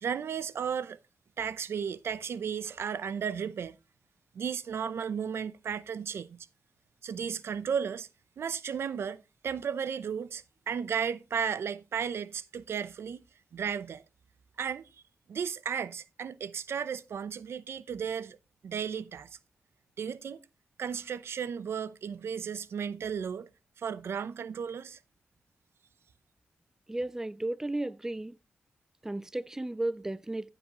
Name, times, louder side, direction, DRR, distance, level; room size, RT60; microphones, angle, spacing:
voice 1, 0.0-1.0 1.4-3.7 4.3-6.4 7.0-8.1 8.4-13.2 13.5-14.0 14.6-14.9 15.3-18.4 18.6-19.3 20.0-20.4 20.8-23.5 23.8-25.0, right 7 dB, 75° right, 0.7 m, -34 dB
voice 2, 26.9-28.3 29.0-30.5, right 1 dB, 10° right, 0.4 m, -34 dB
14.5 x 7.8 x 3.0 m
cardioid pair, 90°, 4 cm